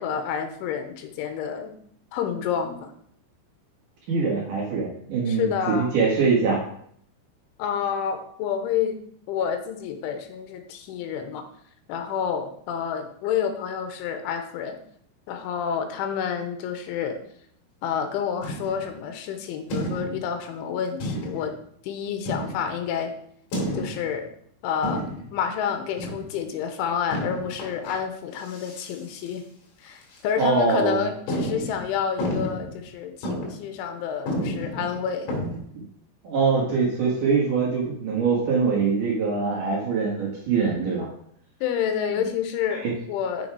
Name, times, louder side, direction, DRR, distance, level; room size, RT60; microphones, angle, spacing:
voice 1, 0.0-1.7 2.1-2.9 5.3-6.0 7.6-9.0 9.3-11.4 11.9-14.8 15.3-17.2 17.8-21.6 21.8-23.1 23.7-24.3 24.6-29.5 29.8-35.3 41.6-43.5, left 7 dB, 80° left, 6 dB, 3.3 m, -29 dB
voice 2, 4.1-6.6 30.4-31.0 34.7-34.8 35.7-35.8 36.2-41.1 42.7-42.9, right 4 dB, 60° right, -3 dB, 2.4 m, -23 dB
sound 1, 18.4-19.0 19.7-20.3 21.0-21.6 22.3-22.8 23.5-24.2 24.8-25.4 26.0-26.4 27.1-28.0 28.4-29.0 29.3-29.4 30.0-30.2 30.7-30.8 31.3-32.8 33.2-33.7 34.0-34.1 34.3-35.6, equal, 60° left, 3.9 m, -31 dB
6.9 x 6.8 x 4.8 m, 0.65 s
omnidirectional pair, 5.6 m